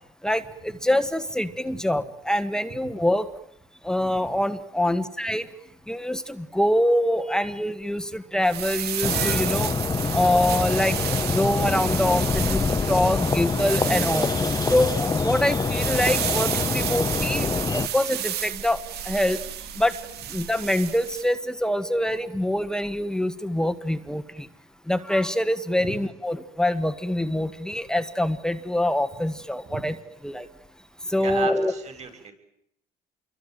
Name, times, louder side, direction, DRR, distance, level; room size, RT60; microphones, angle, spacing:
voice 1, 0.2-3.3 3.8-5.5 5.9-9.7 10.1-14.3 14.7-18.8 19.0-19.4 19.8-19.9 20.3-24.5 24.9-29.9 30.2-30.5 31.1-31.7, left 1 dB, 5° left, 10 dB, 1.6 m, -25 dB
sound 1, 8.4-21.3, right 11 dB, 70° right, 2.2 m, -31 dB
sound 2, 9.0-17.9, left 4 dB, 20° left, 1.0 m, -25 dB
voice 2, 31.2-32.3, right 6 dB, 40° right, 6 dB, 7.2 m, -34 dB
28.0 x 23.0 x 9.2 m, 0.74 s
cardioid pair, 110°, 17 cm